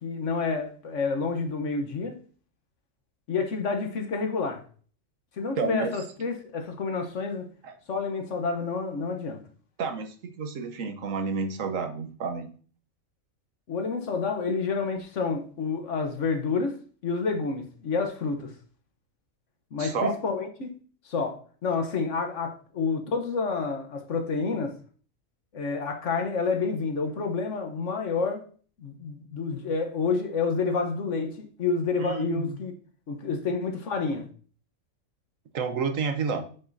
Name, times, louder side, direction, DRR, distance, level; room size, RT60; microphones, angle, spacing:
voice 1, 0.0-2.2 3.3-4.6 5.4-7.5 7.9-9.4 13.7-16.8 17.0-18.5 19.7-20.8 21.0-24.7 25.5-28.4 28.8-32.7 33.1-34.3, left 4 dB, 60° left, 1.3 m, -29 dB
voice 2, 5.6-5.9 7.6-7.7 9.8-12.5 19.8-20.1 32.0-32.6 35.5-36.5, right 5 dB, 70° right, 1.3 m, -30 dB
8.4 x 6.1 x 2.7 m
omnidirectional pair, 1.4 m